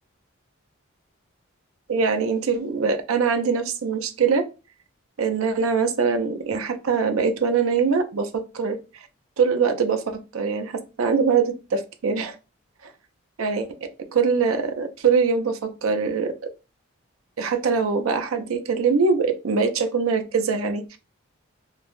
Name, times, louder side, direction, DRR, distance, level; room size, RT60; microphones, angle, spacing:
voice 1, 1.9-4.4 5.2-9.1 9.4-12.4 13.4-13.7 14.1-16.3 17.4-21.0, right 5 dB, 75° right, 0.5 m, -23 dB
3.2 x 2.1 x 2.5 m
head